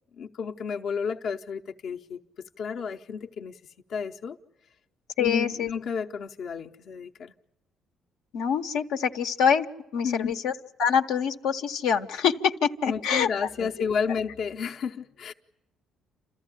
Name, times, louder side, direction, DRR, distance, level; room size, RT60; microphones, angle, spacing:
voice 1, 0.2-3.6 3.9-4.4 5.2-7.3 10.0-10.3 12.9-15.3, left 6 dB, 65° left, 0.8 m, -32 dB
voice 2, 5.2-5.7 8.3-9.7 9.9-10.5 10.8-13.3 13.6-13.7, left 7 dB, 90° left, 1.0 m, -25 dB
28.5 x 14.0 x 9.8 m
cardioid pair, 90°, 0 cm